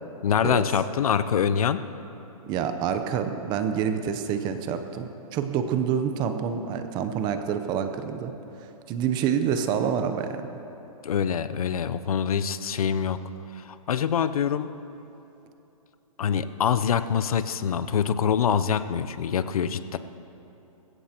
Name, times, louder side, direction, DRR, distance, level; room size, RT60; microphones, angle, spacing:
voice 1, 0.2-1.8 11.0-13.2 13.6-14.7 16.2-20.0, left 7 dB, 70° left, 13 dB, 0.7 m, -25 dB
voice 2, 2.5-8.3 8.6-10.4, right 8 dB, 25° right, 8 dB, 0.7 m, -27 dB
20.5 x 16.5 x 3.0 m, 3.0 s
hypercardioid pair, 145°, 19 cm